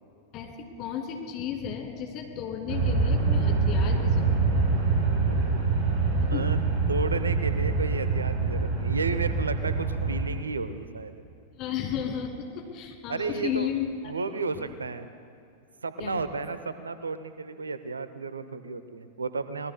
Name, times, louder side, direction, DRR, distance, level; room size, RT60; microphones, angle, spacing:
voice 1, 0.3-4.8 6.2-6.4 6.8-6.9 11.6-13.9 14.1-14.2 14.6-14.7 16.0-16.2, left 8 dB, 40° left, 2 dB, 2.5 m, -34 dB
sound 1, 2.7-10.3, right 4 dB, 40° right, 3.8 m, -25 dB
voice 2, 6.9-11.1 13.1-13.7 14.0-15.1 15.8-19.7, right 4 dB, 75° right, 12 dB, 0.7 m, -32 dB
26.0 x 20.5 x 2.2 m, 2.6 s
figure-of-eight pair, 90°, 0 cm